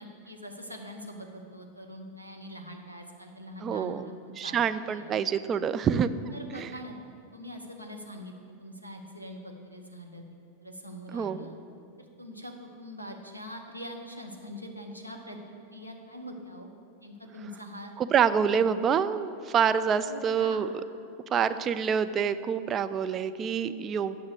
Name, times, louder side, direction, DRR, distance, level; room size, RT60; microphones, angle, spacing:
voice 1, 0.0-4.1 4.4-5.1 6.3-7.0 7.3-8.3 8.6-10.2 10.6-11.6 12.0-15.4 15.7-16.7 17.0-17.9 18.5-18.8 20.0-20.7, equal, 90° right, 1 dB, 1.0 m, -43 dB
voice 2, 3.6-4.1 4.4-6.1 6.5-6.7 11.1-11.5 18.0-20.7 21.3-24.2, right 7 dB, 25° right, 12 dB, 0.4 m, -26 dB
9.4 x 6.0 x 6.4 m, 2.4 s
figure-of-eight pair, 90°, 0 cm